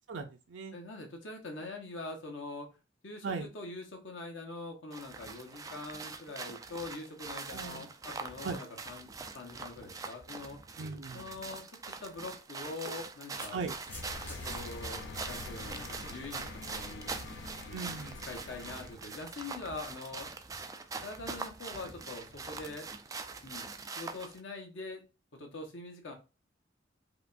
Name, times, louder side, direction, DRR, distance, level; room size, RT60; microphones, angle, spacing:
voice 1, 0.1-0.7 3.2-3.5 7.5-7.9 8.4-8.6 10.8-11.3 13.5-13.7 17.7-18.2, right 4 dB, 80° right, 4 dB, 0.5 m, -38 dB
voice 2, 0.7-2.7 3.0-10.6 11.1-11.6 12.0-13.6 14.3-17.1 17.6-20.3 21.0-22.9 23.4-25.0 25.3-26.1, left 3 dB, 85° left, 3 dB, 1.0 m, -44 dB
sound 1, 4.9-24.4, right 4 dB, 20° right, 0.3 m, -43 dB
sound 2, 13.2-14.6, equal, 10° left, 1.1 m, -49 dB
sound 3, 13.9-19.0, left 3 dB, 70° left, 0.4 m, -45 dB
4.9 x 2.3 x 2.5 m, 0.30 s
head